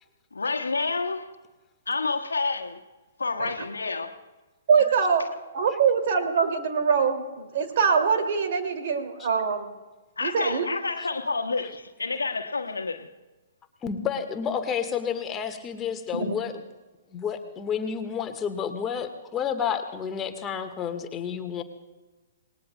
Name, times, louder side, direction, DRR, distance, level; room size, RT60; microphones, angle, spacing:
voice 1, 0.3-1.3 1.9-2.8 3.2-4.2 10.2-13.1, left 3 dB, 70° left, 1.3 m, -29 dB
voice 2, 4.7-5.3 5.5-9.7 10.2-10.7 16.1-16.3, right 6 dB, 45° right, 2.4 m, -23 dB
voice 3, 13.8-16.5 17.1-21.6, left 7 dB, 20° left, 1.5 m, -30 dB
27.5 x 20.0 x 2.2 m
figure-of-eight pair, 120°, 0 cm